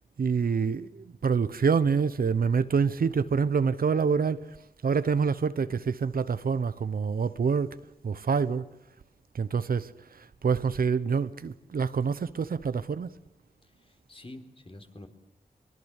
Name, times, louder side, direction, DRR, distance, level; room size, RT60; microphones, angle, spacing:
voice 1, 0.2-4.6 4.8-7.8 8.0-8.7 9.3-13.1, right 5 dB, 80° right, 1.0 m, -26 dB
voice 2, 13.6-15.1, left 1 dB, 40° left, 4.0 m, -47 dB
23.5 x 23.0 x 8.4 m
cardioid pair, 60°, 15 cm